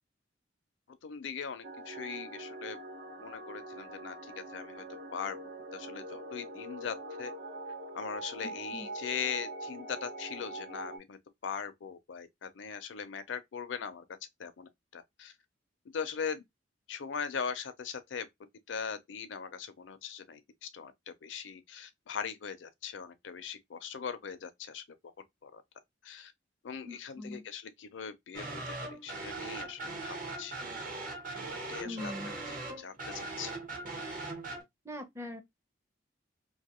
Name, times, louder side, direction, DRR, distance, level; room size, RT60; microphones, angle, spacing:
voice 1, 0.9-2.8 3.2-4.8 5.1-5.4 5.7-7.3 7.9-14.0 14.4-15.3 15.9-16.4 16.9-18.3 18.7-24.8 25.4-25.6 26.0-26.3 26.6-30.5 31.7-33.5, left 6 dB, 75° left, 0.5 m, -40 dB
sound 1, 1.6-11.0, right 1 dB, 85° right, 1.0 m, -43 dB
voice 2, 8.4-8.9 26.8-27.4 31.8-32.3 34.9-35.4, left 1 dB, 15° right, 0.6 m, -42 dB
sound 2, 28.3-34.6, right 2 dB, 45° right, 0.9 m, -40 dB
2.5 x 2.3 x 2.9 m
head